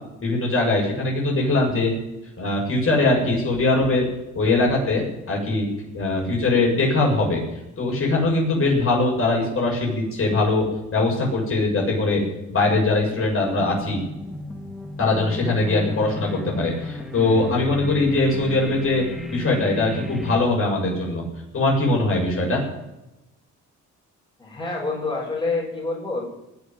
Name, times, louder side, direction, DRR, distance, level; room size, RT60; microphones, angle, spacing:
voice 1, 0.2-1.9 2.4-4.1 4.3-5.7 5.9-7.4 7.8-10.7 10.9-12.2 12.5-14.0 15.0-19.0 19.3-21.2 21.5-22.6, left 2 dB, 45° left, -2 dB, 7.3 m, -21 dB
sound 1, 13.6-20.4, left 2 dB, ahead, 2.4 m, -34 dB
voice 2, 24.4-26.2, left 3 dB, 15° left, -3 dB, 6.4 m, -27 dB
20.0 x 7.1 x 9.2 m, 0.93 s
cardioid pair, 90°, 30 cm